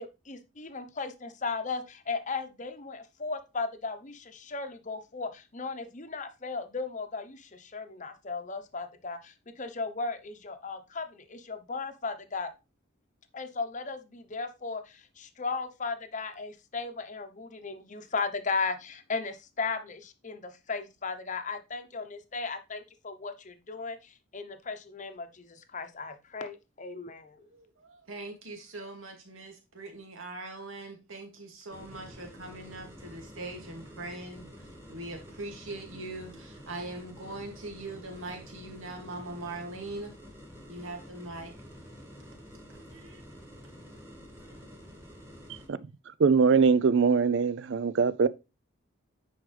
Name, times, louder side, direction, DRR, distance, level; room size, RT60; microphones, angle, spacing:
voice 1, 0.0-12.5 13.3-27.5, left 4 dB, 35° left, 0.8 m, -36 dB
voice 2, 27.4-34.4 34.9-40.1 40.7-41.5 42.9-43.2 44.4-44.6, right 2 dB, 80° right, 2.3 m, -41 dB
sound 1, 31.7-45.7, equal, 10° right, 1.9 m, -49 dB
voice 3, 46.2-48.3, right 5 dB, 60° right, 0.4 m, -22 dB
9.9 x 4.7 x 3.3 m
head